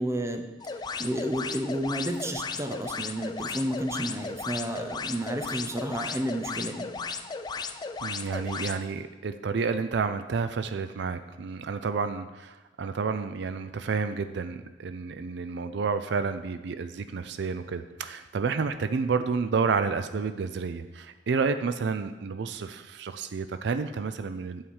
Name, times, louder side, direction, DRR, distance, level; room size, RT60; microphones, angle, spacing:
voice 1, 0.0-6.9, right 1 dB, 15° right, 5 dB, 0.7 m, -31 dB
sound 1, 0.6-8.8, left 5 dB, 25° left, 0.4 m, -35 dB
voice 2, 8.0-24.6, right 5 dB, 65° right, 10 dB, 0.4 m, -30 dB
8.7 x 4.8 x 7.2 m, 1.1 s
head